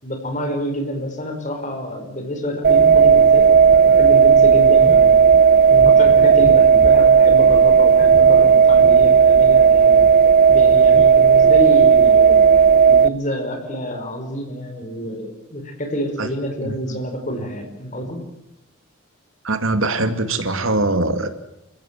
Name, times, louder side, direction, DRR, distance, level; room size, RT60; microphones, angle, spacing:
voice 1, 0.0-5.2 5.7-10.1 10.5-12.4 12.9-18.3, equal, 35° left, 5 dB, 5.1 m, -28 dB
sound 1, 2.6-13.1, right 6 dB, 40° right, 0.7 m, -12 dB
voice 2, 19.4-21.3, right 2 dB, 70° right, 8 dB, 2.3 m, -21 dB
28.0 x 16.0 x 7.6 m, 0.93 s
head